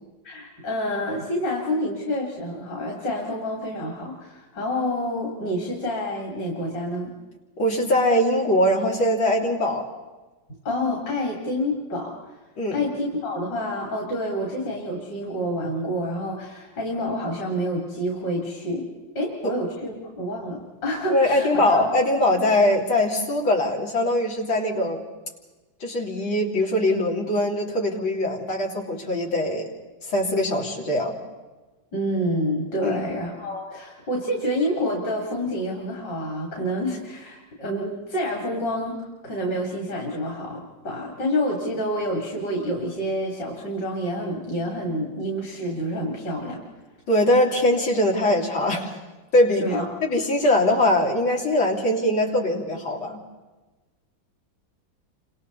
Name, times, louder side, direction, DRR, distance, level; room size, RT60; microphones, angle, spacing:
voice 1, 0.2-7.1 10.7-12.4 12.7-18.9 19.2-21.9 31.9-46.6 49.6-49.9, equal, 60° left, -1 dB, 3.9 m, -28 dB
voice 2, 7.6-9.8 12.6-12.8 19.4-19.5 21.1-25.0 25.8-29.7 30.0-31.2 32.8-33.1 47.1-48.9 49.3-49.7 50.0-53.2, left 1 dB, 90° left, -1 dB, 3.9 m, -22 dB
30.0 x 26.5 x 4.1 m, 1.2 s
omnidirectional pair, 2.1 m